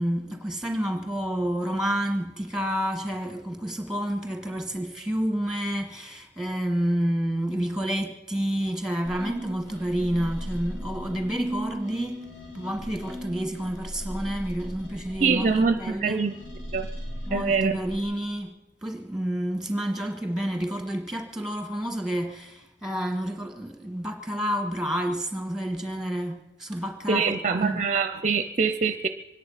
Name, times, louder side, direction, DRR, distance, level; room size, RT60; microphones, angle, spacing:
voice 1, 0.0-12.2 12.5-16.2 17.3-18.6 18.8-27.8, equal, 5° right, 1.6 m, -29 dB
sound 1, 9.0-18.0, equal, 90° left, 5.1 m, -37 dB
voice 2, 15.2-16.3 16.7-16.9 17.3-17.8 27.1-29.1, right 5 dB, 40° right, 0.5 m, -24 dB
24.5 x 10.5 x 5.7 m
head